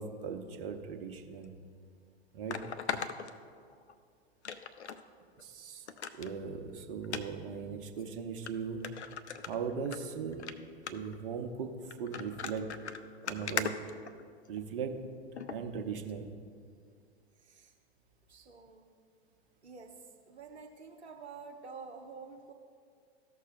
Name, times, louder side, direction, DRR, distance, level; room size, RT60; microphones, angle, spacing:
voice 1, 0.0-1.6 2.3-2.6 5.4-5.9 6.1-8.9 9.5-10.5 10.9-12.7 13.2-13.8 14.5-15.2 15.5-16.3, right 6 dB, 55° right, 5 dB, 0.9 m, -38 dB
sound 1, 1.4-1.5 2.5-3.9 4.4-5.0 5.4-5.5 5.9-6.3 7.0-7.2 8.0-8.1 8.5-8.6 8.8-10.0 10.3-10.5 10.9-11.2 11.9-14.6 15.4-15.6 16.1-16.2, left 6 dB, 85° left, 0.5 m, -39 dB
voice 2, 18.3-18.9 19.6-19.9 20.3-22.5, right 5 dB, 85° right, 2 dB, 0.7 m, -48 dB
14.0 x 6.5 x 2.4 m, 2.2 s
figure-of-eight pair, 95°, 33 cm